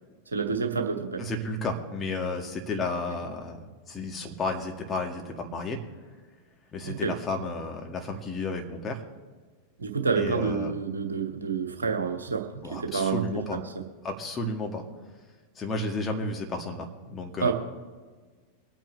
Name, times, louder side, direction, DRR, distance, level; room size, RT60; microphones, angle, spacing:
voice 1, 0.3-1.2 6.8-7.1 9.8-13.2 17.4-17.5, right 5 dB, 75° right, 4 dB, 1.5 m, -28 dB
voice 2, 1.2-3.6 3.9-5.8 6.7-9.0 10.2-10.7 12.6-13.6 14.0-14.8 15.6-17.5, left 2 dB, 20° left, 2 dB, 1.8 m, -32 dB
23.5 x 9.1 x 3.2 m, 1.4 s
figure-of-eight pair, 90°, 0 cm